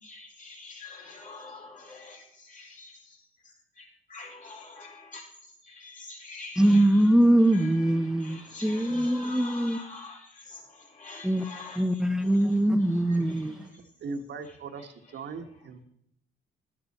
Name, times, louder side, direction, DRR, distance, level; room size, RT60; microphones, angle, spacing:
voice 1, 0.0-3.0 3.8-5.2 5.6-6.9 7.5-7.7 8.0-11.8 12.2-12.3 13.1-13.6, left 3 dB, 40° left, 4.9 m, -45 dB
voice 2, 6.6-9.8 11.2-11.4 11.8-13.5, right 1 dB, 5° right, 0.8 m, -22 dB
voice 3, 13.2-15.8, right 4 dB, 60° right, 1.4 m, -40 dB
12.0 x 10.5 x 4.2 m
cardioid pair, 90°, 20 cm